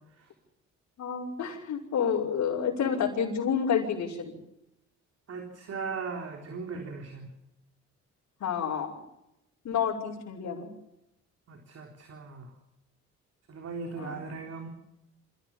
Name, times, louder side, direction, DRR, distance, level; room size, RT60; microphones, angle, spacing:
voice 1, 1.0-4.3 8.4-8.9 9.6-10.7 13.9-14.2, left 7 dB, 65° left, -6 dB, 5.9 m, -29 dB
voice 2, 5.3-7.3 11.5-12.5 13.5-14.7, right 4 dB, 55° right, 3 dB, 3.8 m, -38 dB
27.5 x 16.5 x 7.3 m, 0.87 s
cardioid pair, 90°, 30 cm